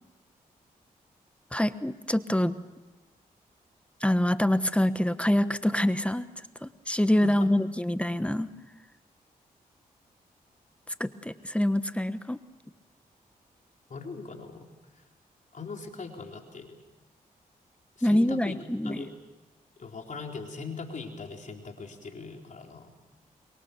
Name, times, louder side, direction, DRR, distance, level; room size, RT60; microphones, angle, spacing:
voice 1, 1.5-2.5 4.0-6.3 6.6-8.5 11.0-12.4 18.0-19.0, left 1 dB, 10° left, 12 dB, 1.2 m, -25 dB
voice 2, 13.9-15.0 15.5-16.8 18.0-19.1 19.8-22.9, left 4 dB, 55° left, 2 dB, 4.1 m, -41 dB
25.0 x 22.5 x 7.0 m, 1.1 s
cardioid pair, 55°, 16 cm